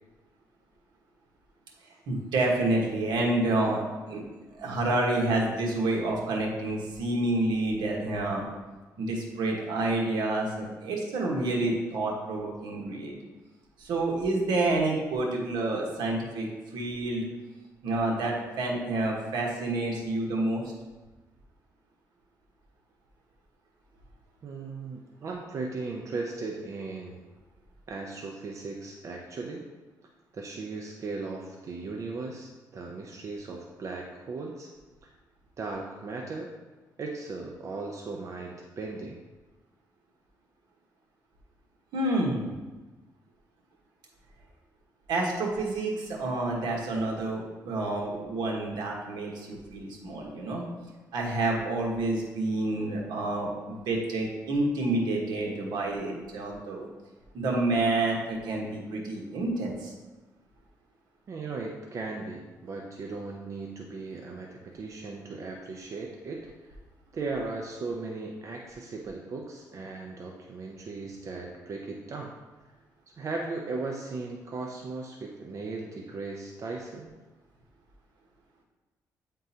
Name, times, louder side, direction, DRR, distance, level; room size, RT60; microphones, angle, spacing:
voice 1, 2.1-3.8 4.1-4.2 4.6-8.5 9.0-13.2 13.8-16.5 16.7-17.2 17.8-20.6 41.9-42.5 45.1-50.6 51.1-56.9 57.3-59.9, right 2 dB, 90° right, -1 dB, 1.2 m, -28 dB
voice 2, 24.4-27.2 27.9-29.6 30.3-34.7 35.6-36.5 37.0-39.2 61.3-66.7 67.1-72.3 73.2-77.1, right 3 dB, 45° right, 0 dB, 0.6 m, -37 dB
9.1 x 3.7 x 2.8 m, 1.2 s
cardioid pair, 115°, 7 cm